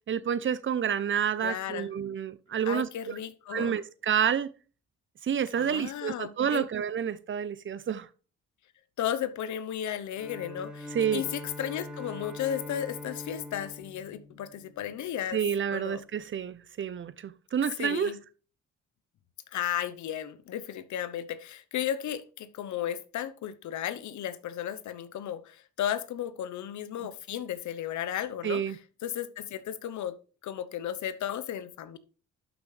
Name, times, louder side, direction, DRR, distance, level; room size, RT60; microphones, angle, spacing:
voice 1, 0.1-3.2 3.5-4.5 5.2-8.1 10.9-11.2 15.3-18.1 28.4-28.8, right 8 dB, 40° right, 0.6 m, -29 dB
voice 2, 1.4-1.9 2.6-3.8 5.6-6.7 9.0-15.4 15.7-16.0 17.8-18.2 19.5-28.8 29.0-30.1 30.4-32.0, left 10 dB, 75° left, 0.9 m, -34 dB
Bowed string instrument, 10.2-15.2, left 2 dB, ahead, 2.9 m, -43 dB
11.5 x 6.3 x 3.3 m
cardioid pair, 90°, 30 cm